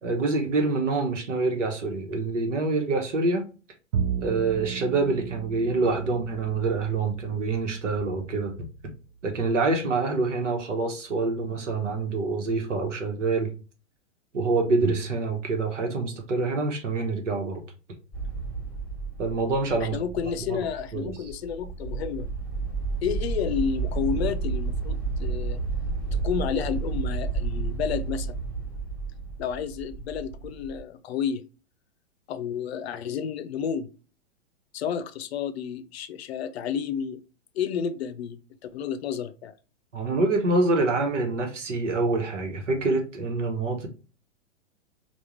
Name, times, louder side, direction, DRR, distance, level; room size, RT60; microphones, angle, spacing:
voice 1, 0.0-3.4 4.2-8.5 9.2-13.5 14.3-17.6 19.2-20.0 20.5-20.6 20.9-21.1 39.9-43.9, right 3 dB, 80° right, 1.1 m, -26 dB
Bowed string instrument, 3.9-10.4, right 7 dB, 50° right, 0.5 m, -36 dB
sound 1, 18.1-30.8, right 4 dB, 5° left, 1.2 m, -31 dB
voice 2, 19.8-22.3 23.0-25.6 26.1-28.4 29.4-31.4 32.3-33.9 34.7-37.2 37.5-39.5, left 7 dB, 60° left, 0.5 m, -31 dB
3.5 x 2.4 x 2.9 m
hypercardioid pair, 110°, 36 cm